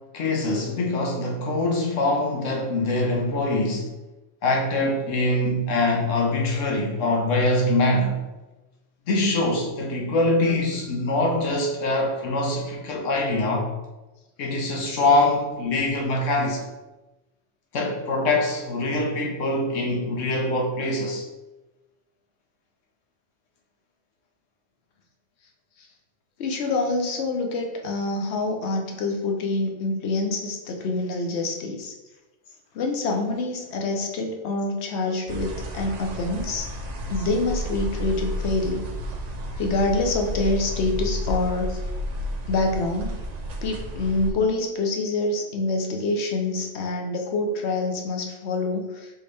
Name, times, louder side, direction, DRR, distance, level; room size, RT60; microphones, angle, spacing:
voice 1, 0.1-3.9 4.4-8.2 9.1-13.7 14.4-16.6 17.7-21.2, left 2 dB, 85° left, 0 dB, 1.2 m, -23 dB
voice 2, 26.4-31.9 32.7-36.7 37.1-38.9 39.6-41.7 42.5-43.2 43.6-49.1, left 2 dB, 65° left, 2 dB, 1.0 m, -26 dB
sound 1, 35.3-44.3, equal, 60° right, 0.4 m, -31 dB
4.2 x 3.5 x 3.3 m, 1.1 s
omnidirectional pair, 1.3 m